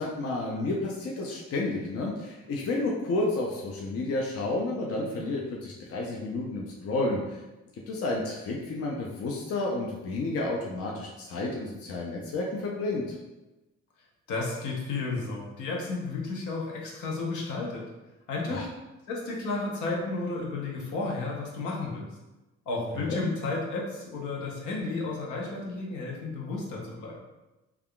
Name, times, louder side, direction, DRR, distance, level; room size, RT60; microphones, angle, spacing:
voice 1, 0.0-7.4 7.9-13.0 18.5-18.6 23.0-23.3, left 2 dB, 50° left, -2 dB, 0.5 m, -31 dB
voice 2, 14.3-17.8 18.3-18.7 19.1-22.1 22.7-27.2, left 3 dB, 75° left, -2 dB, 0.8 m, -32 dB
3.4 x 2.4 x 2.2 m, 1.1 s
cardioid pair, 90°, 30 cm